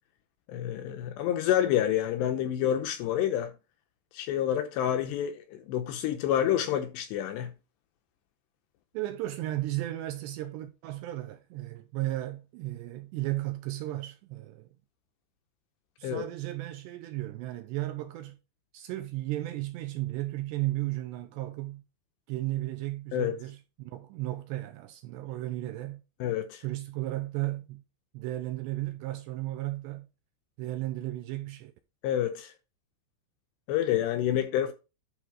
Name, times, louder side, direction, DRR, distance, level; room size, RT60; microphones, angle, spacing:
voice 1, 0.5-3.5 4.1-7.5 16.0-16.2 23.1-23.4 26.2-26.6 32.0-32.5 33.7-34.7, left 11 dB, 80° left, 2.6 m, -28 dB
voice 2, 8.9-14.7 16.0-18.4 18.7-21.8 22.3-26.0 26.6-27.8 28.1-30.1 30.6-31.7, right 16 dB, 80° right, 2.6 m, -34 dB
11.0 x 3.7 x 4.7 m
omnidirectional pair, 5.5 m